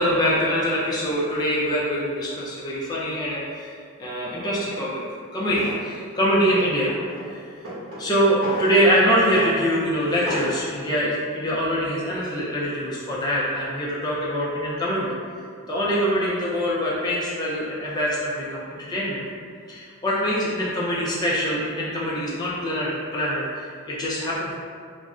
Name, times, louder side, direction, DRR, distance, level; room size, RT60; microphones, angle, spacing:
voice 1, 0.0-3.7 4.0-5.0 5.3-6.9 7.3-7.5 8.0-15.1 15.7-18.6 18.9-19.2 19.7-24.5, equal, 20° left, -7 dB, 0.4 m, -24 dB
Drawer open or close, 5.5-5.8 6.4-7.3 7.6-9.1 9.3-9.6 9.9-10.6, equal, 70° right, 0.9 m, -33 dB
2.4 x 2.1 x 3.5 m, 2.1 s
head